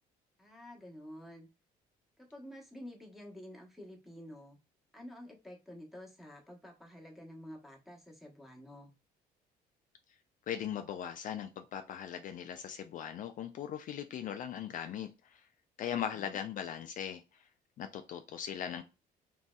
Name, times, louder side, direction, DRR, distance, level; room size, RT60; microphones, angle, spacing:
voice 1, 0.4-1.5 2.2-4.6 4.9-8.9, equal, ahead, 1.1 m, -50 dB
voice 2, 10.5-15.5 15.8-17.5 17.8-18.8, left 9 dB, 50° left, 0.4 m, -39 dB
3.0 x 2.7 x 2.2 m
cardioid pair, 110°, 17 cm